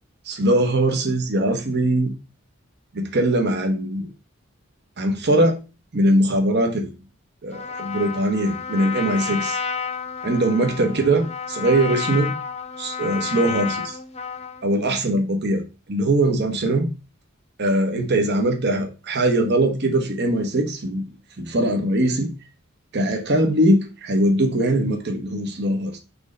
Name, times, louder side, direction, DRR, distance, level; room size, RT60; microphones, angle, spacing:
voice 1, 0.3-2.1 2.9-4.1 5.0-5.6 5.9-6.9 7.4-9.6 10.2-12.3 12.8-14.0 14.6-15.6 15.9-16.9 17.6-21.0 21.4-22.3 22.9-26.0, right 1 dB, 55° right, 1.0 m, -21 dB
Trumpet, 7.5-14.7, left 6 dB, 30° left, 0.6 m, -31 dB
6.1 x 3.3 x 5.2 m
head